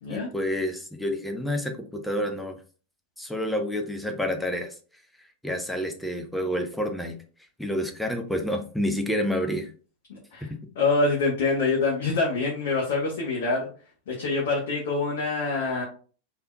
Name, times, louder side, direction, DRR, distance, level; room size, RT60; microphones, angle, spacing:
voice 1, 0.1-2.6 3.2-4.7 5.4-7.2 7.6-9.7 10.4-10.6, equal, 5° left, 4 dB, 0.6 m, -29 dB
voice 2, 10.1-10.5 10.8-13.7 14.1-15.8, left 3 dB, 55° left, -2 dB, 0.8 m, -25 dB
3.4 x 2.8 x 2.2 m, 0.39 s
figure-of-eight pair, 90°, 0 cm